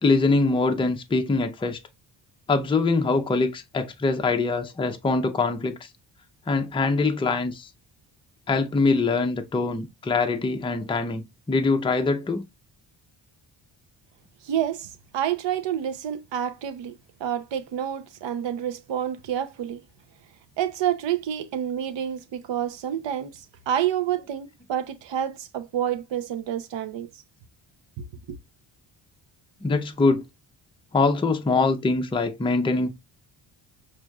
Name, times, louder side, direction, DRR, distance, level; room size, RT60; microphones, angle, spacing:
voice 1, 0.0-1.8 2.5-5.9 6.5-7.7 8.5-12.4 29.6-30.2 30.9-33.0, left 3 dB, 10° left, 0.6 m, -23 dB
voice 2, 14.4-19.8 20.6-27.1 28.0-28.4, right 10 dB, 70° right, 0.7 m, -29 dB
6.0 x 2.6 x 2.3 m
cardioid pair, 100°, 46 cm